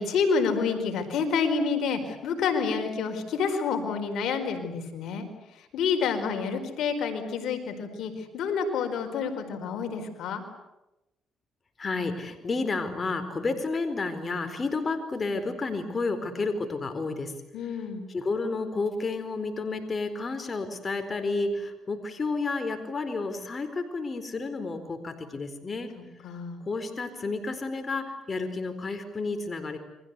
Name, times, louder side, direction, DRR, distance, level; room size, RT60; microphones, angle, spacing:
voice 1, 0.0-5.3 5.6-10.4 17.5-18.1 26.2-26.6, left 5 dB, 75° left, 6 dB, 4.6 m, -28 dB
voice 2, 11.8-17.3 18.1-25.9 26.7-29.8, left 3 dB, 35° left, 7 dB, 4.3 m, -31 dB
29.5 x 24.0 x 8.3 m, 0.97 s
cardioid pair, 90°, 0 cm